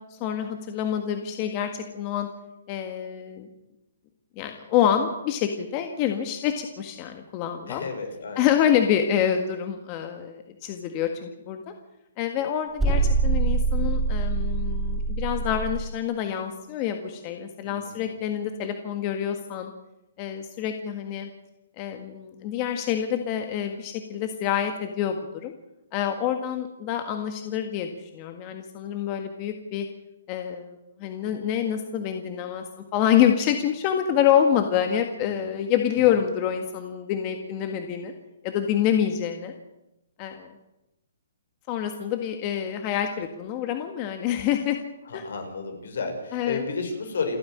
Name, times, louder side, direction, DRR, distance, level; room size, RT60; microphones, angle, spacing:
voice 1, 0.1-2.3 2.7-3.5 4.3-7.8 8.4-11.7 12.2-19.7 20.2-21.3 21.8-25.5 25.9-29.8 30.3-38.1 38.4-39.5 40.2-40.5 41.7-44.8 45.1-45.2 46.3-46.6, left 9 dB, 25° left, 6 dB, 1.7 m, -27 dB
voice 2, 7.7-8.5 17.6-18.1 35.2-35.4 36.0-36.1 45.1-47.4, left 4 dB, 70° left, 5 dB, 6.5 m, -32 dB
sound 1, 12.8-15.9, right 3 dB, 5° right, 4.3 m, -24 dB
28.5 x 9.8 x 9.9 m, 0.91 s
hypercardioid pair, 160°, 0 cm